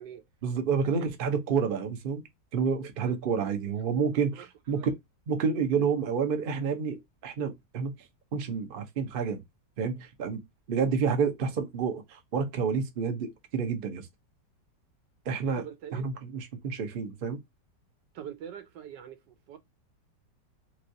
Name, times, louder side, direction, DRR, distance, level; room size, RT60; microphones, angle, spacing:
voice 1, 0.4-2.2 2.5-4.9 5.3-7.9 8.3-9.4 9.8-14.1 15.3-15.6 15.9-17.4, right 6 dB, 60° right, 0.5 m, -29 dB
voice 2, 2.8-3.6 4.4-4.5 4.7-4.9 15.6-16.0 18.1-19.6, right 9 dB, 80° right, 1.3 m, -44 dB
3.1 x 3.0 x 2.6 m
omnidirectional pair, 1.9 m